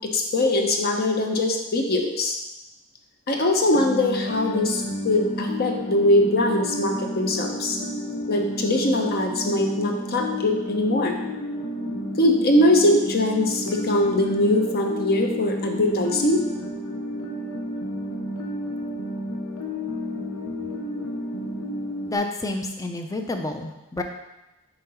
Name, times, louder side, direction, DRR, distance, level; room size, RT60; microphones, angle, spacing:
voice 1, 0.1-2.4 3.3-7.8 8.3-11.1 12.2-16.4, left 1 dB, 45° left, 2 dB, 0.8 m, -22 dB
sound 1, 3.7-22.2, equal, 75° left, 0.8 m, -31 dB
voice 2, 22.1-24.0, left 2 dB, 15° left, 4 dB, 0.5 m, -29 dB
6.0 x 3.8 x 5.5 m, 0.97 s
head